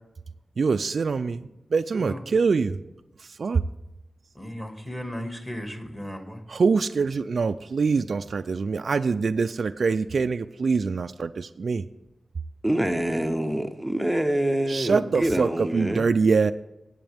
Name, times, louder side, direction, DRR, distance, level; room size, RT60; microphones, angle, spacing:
voice 1, 0.6-2.8 3.2-3.6 6.5-11.9 14.7-16.5, right 4 dB, 65° right, 8 dB, 0.3 m, -24 dB
voice 2, 4.4-6.4 14.9-15.0, equal, 15° left, 4 dB, 2.1 m, -35 dB
voice 3, 12.6-16.1, right 1 dB, 5° right, 7 dB, 0.7 m, -26 dB
18.0 x 8.0 x 3.5 m, 0.95 s
wide cardioid pair, 120°, 0 cm